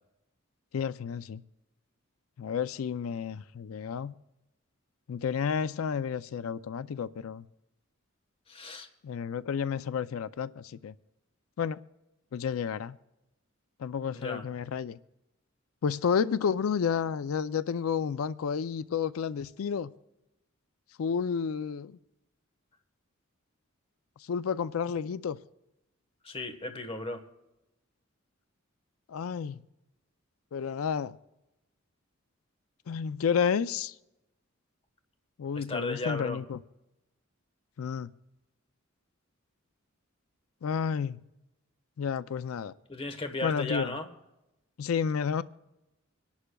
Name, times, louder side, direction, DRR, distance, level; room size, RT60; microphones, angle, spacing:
voice 1, 0.7-1.4 2.4-4.1 5.1-7.4 9.0-10.9 11.6-11.8 12.3-13.0 13.8-15.0 15.8-19.9 21.0-22.0 24.3-25.4 29.1-29.6 30.5-31.2 32.9-33.9 35.4-36.6 37.8-38.1 40.6-41.3 42.0-42.7 43.4-43.9 44.8-45.4, left 6 dB, 90° left, 0.4 m, -31 dB
voice 2, 8.5-8.9 14.1-14.4 26.2-27.2 35.5-36.4 42.9-44.1, left 2 dB, 30° left, 1.2 m, -35 dB
26.0 x 11.5 x 2.3 m
head